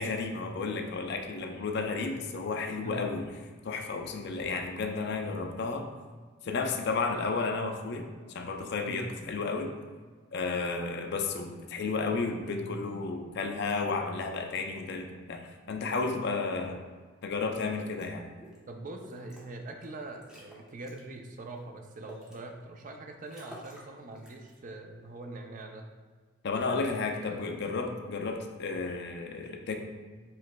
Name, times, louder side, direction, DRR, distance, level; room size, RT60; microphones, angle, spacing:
voice 1, 0.0-3.3 3.6-5.9 6.4-9.7 10.3-15.4 15.7-16.8 17.2-18.3 26.4-29.8, left 4 dB, 55° left, 4 dB, 0.4 m, -32 dB
sound 1, 18.0-18.1 18.4-18.6 19.0-19.4 19.8-19.9 20.2-21.0 21.5-22.4 22.8-22.9 23.2-23.9 24.2-24.6, equal, 5° right, 0.8 m, -50 dB
voice 2, 18.7-25.9 26.8-27.4, right 2 dB, 40° right, 4 dB, 0.4 m, -43 dB
7.5 x 3.1 x 2.2 m, 1.5 s
head